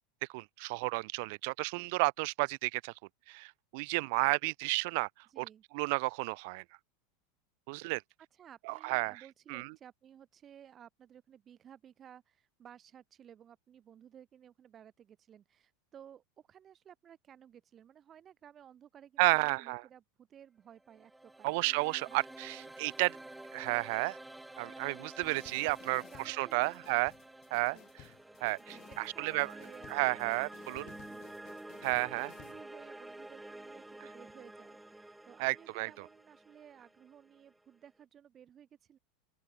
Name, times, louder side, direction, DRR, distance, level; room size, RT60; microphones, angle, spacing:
voice 1, 0.3-2.9 3.3-5.1 5.4-5.5 5.7-6.6 7.7-8.0 8.7-9.1 9.5-9.7 19.2-19.8 21.4-23.1 23.5-24.2 24.6-27.1 27.5-27.8 28.4-29.5 29.9-30.8 31.8-32.3 35.4-36.0, right 28 dB, 65° right, 0.8 m, -32 dB
voice 2, 5.3-5.6 8.3-21.5 22.0-22.2 22.6-23.2 25.7-26.8 27.5-27.9 28.6-31.6 31.9-39.0, right 9 dB, 30° right, 3.3 m, -56 dB
sound 1, 20.8-37.9, right 1 dB, 5° right, 4.2 m, -50 dB
sound 2, 25.2-32.6, left 17 dB, 45° left, 3.4 m, -57 dB
open air
supercardioid pair, 125°, 0 cm